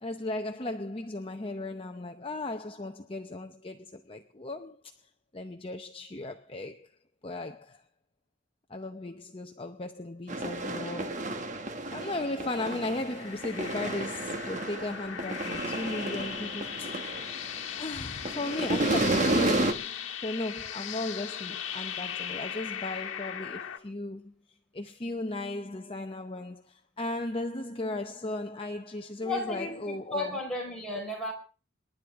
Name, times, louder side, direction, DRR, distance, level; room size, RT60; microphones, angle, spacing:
voice 1, 0.0-4.8 5.3-6.9 7.2-7.8 8.7-11.6 11.9-17.0 17.7-30.4, left 2 dB, 25° left, 0.7 m, -36 dB
sound 1, 10.3-17.8 18.1-19.7, right 2 dB, 35° right, 1.3 m, -31 dB
sound 2, 13.0-23.8, left 9 dB, 70° left, 1.5 m, -38 dB
voice 2, 29.2-31.3, left 1 dB, 5° left, 4.6 m, -34 dB
27.5 x 11.0 x 3.6 m
head